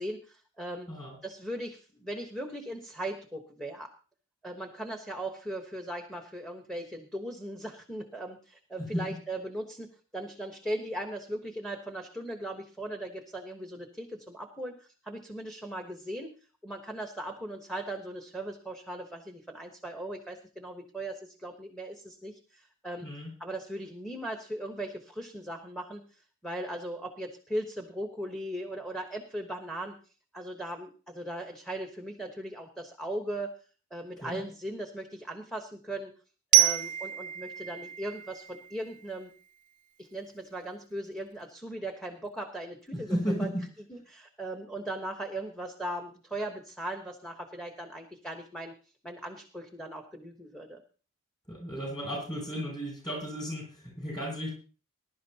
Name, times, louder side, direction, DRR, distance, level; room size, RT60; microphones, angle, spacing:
voice 1, 0.0-0.9 1.2-3.9 4.4-9.9 10.1-16.3 16.6-23.1 23.4-30.0 30.3-33.5 33.9-36.1 36.5-39.3 40.0-43.5 43.9-50.8, right 1 dB, ahead, 3 dB, 1.2 m, -38 dB
Glockenspiel, 36.5-39.4, right 16 dB, 35° right, 0.6 m, -27 dB
voice 2, 42.9-43.6 51.5-54.5, equal, 20° left, 0 dB, 7.9 m, -34 dB
20.5 x 11.5 x 2.9 m, 0.38 s
head